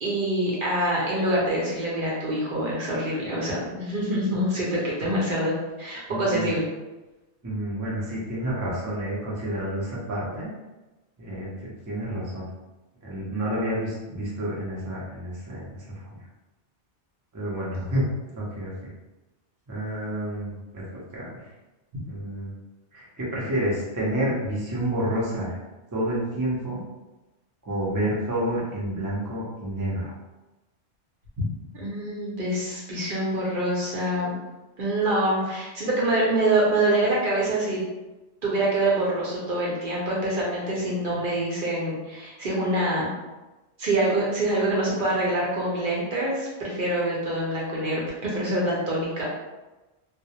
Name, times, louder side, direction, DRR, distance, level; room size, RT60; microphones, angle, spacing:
voice 1, 0.0-6.7 31.4-31.5 31.7-34.4 34.8-37.8 38.4-43.1 43.8-49.2, right 1 dB, 55° right, -5 dB, 0.7 m, -25 dB
voice 2, 6.1-6.5 7.4-10.5 11.2-12.4 13.0-16.0 17.3-18.1 18.4-18.7 19.7-21.4 22.1-22.5 22.9-25.6 25.9-26.8 27.6-30.1, right 1 dB, 25° right, -6 dB, 0.4 m, -29 dB
2.2 x 2.0 x 2.8 m, 1.1 s
omnidirectional pair, 1.2 m